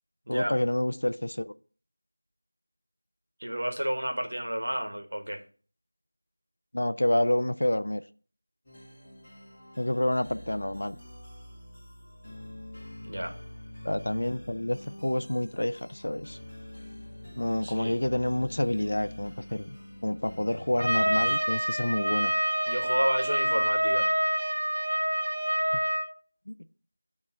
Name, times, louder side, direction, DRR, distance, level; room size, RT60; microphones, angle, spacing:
voice 1, 0.3-1.5 6.7-8.0 9.8-11.0 13.8-16.4 17.4-19.8 20.0-22.3 26.5-26.6, left 1 dB, 55° left, 12 dB, 0.4 m, -28 dB
voice 2, 3.4-5.4 13.0-13.3 17.6-17.9 22.7-24.1, equal, 70° right, 4 dB, 1.3 m, -31 dB
sound 1, 8.6-21.3, left 1 dB, 10° left, 1.5 m, -46 dB
Trumpet, 20.8-26.1, right 1 dB, 40° right, 1.3 m, -27 dB
8.9 x 3.1 x 4.6 m, 0.41 s
figure-of-eight pair, 180°, 0 cm